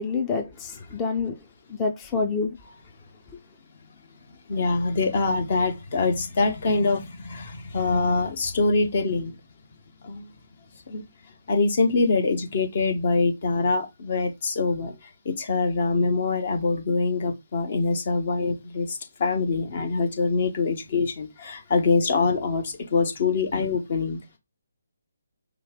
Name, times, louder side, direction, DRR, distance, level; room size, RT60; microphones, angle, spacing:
voice 1, 0.0-1.4 1.7-2.6, left 4 dB, 15° left, 0.6 m, -27 dB
voice 2, 4.3-9.3 10.0-10.3 10.9-11.1 11.5-24.2, left 3 dB, 40° left, 1.0 m, -24 dB
5.1 x 2.4 x 3.7 m
figure-of-eight pair, 145°, 0 cm